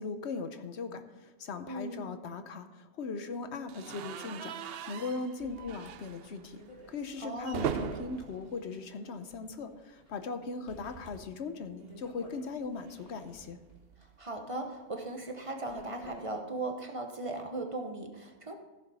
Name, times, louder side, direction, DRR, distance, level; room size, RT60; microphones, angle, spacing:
voice 1, 0.0-4.6 4.9-6.6 6.9-13.6, left 4 dB, 85° left, 9 dB, 1.1 m, -39 dB
voice 2, 1.7-2.1 7.2-7.8 14.2-18.5, right 2 dB, 30° right, 4 dB, 1.0 m, -38 dB
sound 1, 3.7-9.7 10.0-10.2 10.5-10.6 11.8-14.2, right 9 dB, 70° right, 0.7 m, -41 dB
sound 2, 4.3-4.4 4.7-4.8 5.4-8.8 9.1-9.2 9.8-10.3 10.7-12.5 13.1-16.4, equal, 60° left, 2.1 m, -55 dB
15.0 x 7.0 x 4.1 m, 1.2 s
omnidirectional pair, 1.1 m